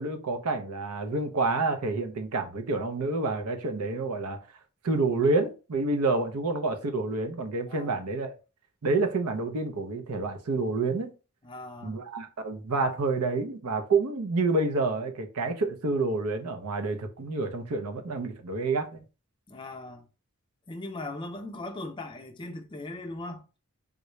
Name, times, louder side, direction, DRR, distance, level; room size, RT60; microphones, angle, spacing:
voice 1, 0.0-4.4 4.8-8.4 8.8-11.1 11.8-19.0, right 3 dB, 90° right, 0.6 m, -28 dB
voice 2, 11.4-12.0 19.5-20.1 20.7-23.5, left 2 dB, 20° left, 0.4 m, -39 dB
3.7 x 2.2 x 3.0 m
head